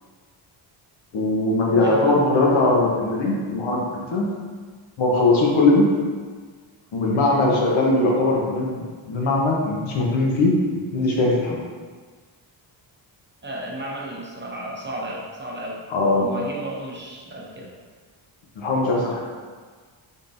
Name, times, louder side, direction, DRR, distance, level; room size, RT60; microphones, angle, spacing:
voice 1, 1.1-4.3 5.0-5.9 6.9-10.5 10.9-11.6 15.9-16.3 18.6-19.2, left 2 dB, 70° left, -2 dB, 1.0 m, -20 dB
voice 2, 1.7-2.2 13.4-15.8 16.2-17.7, right 1 dB, 25° right, -3 dB, 0.7 m, -33 dB
4.0 x 3.6 x 2.6 m, 1.5 s
cardioid pair, 90°, 48 cm